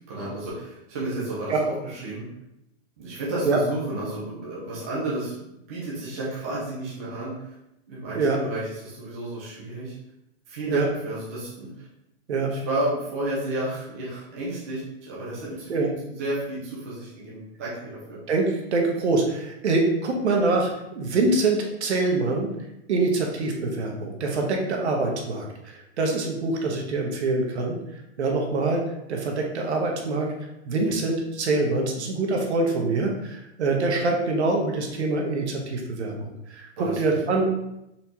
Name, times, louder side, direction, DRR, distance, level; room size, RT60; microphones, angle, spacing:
voice 1, 0.1-2.3 3.0-5.4 5.7-7.5 7.9-9.9 10.5-11.9 12.5-18.2 30.8-30.9 36.8-37.0, right 1 dB, 15° right, -8 dB, 0.5 m, -32 dB
voice 2, 18.3-22.5 22.9-30.3 30.6-37.5, right 3 dB, 70° right, 1 dB, 1.1 m, -25 dB
4.3 x 3.3 x 2.8 m, 0.86 s
hypercardioid pair, 175°, 34 cm